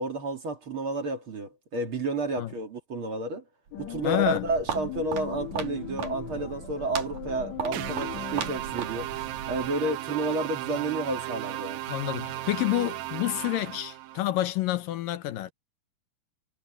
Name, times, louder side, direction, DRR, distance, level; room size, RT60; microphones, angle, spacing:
voice 1, 0.0-3.4 3.8-9.1 9.5-11.8, right 2 dB, 40° right, 2.7 m, -31 dB
sound 1, 3.7-10.1, left 13 dB, 60° left, 2.9 m, -41 dB
Walk footsteps, 3.7-9.8, right 7 dB, 65° right, 4.5 m, -38 dB
voice 2, 4.0-4.4 11.9-15.5, left 15 dB, 75° left, 2.5 m, -28 dB
sound 2, 7.7-14.2, right 15 dB, 85° right, 2.9 m, -35 dB
omnidirectional pair, 4.0 m